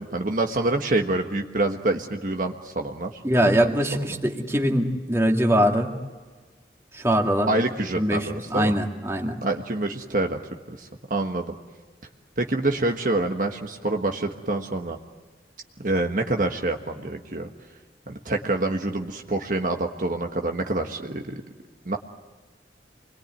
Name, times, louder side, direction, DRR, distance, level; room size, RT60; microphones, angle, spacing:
voice 1, 0.0-3.7 7.5-8.7 9.4-10.4 10.7-11.6 12.4-15.0 15.8-17.5 18.1-21.4 21.8-22.0, right 2 dB, 50° right, 3 dB, 1.4 m, -26 dB
voice 2, 3.2-5.9 6.9-7.5 7.9-9.4, equal, 15° right, 2 dB, 2.2 m, -22 dB
29.0 x 21.5 x 9.2 m, 1.3 s
head